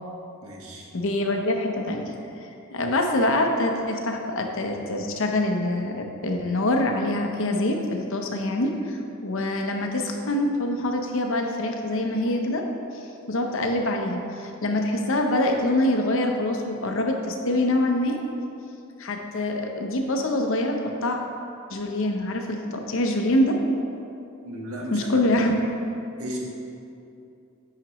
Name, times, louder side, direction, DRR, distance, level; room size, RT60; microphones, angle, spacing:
voice 1, 0.4-0.9 2.8-3.0 24.4-25.2 26.2-26.4, equal, 85° right, -2 dB, 1.3 m, -35 dB
voice 2, 0.9-2.1 2.7-12.6 13.3-18.2 19.0-21.2 21.7-23.6 24.9-25.5, left 1 dB, 65° left, 3 dB, 0.7 m, -25 dB
8.9 x 5.8 x 3.0 m, 2.7 s
head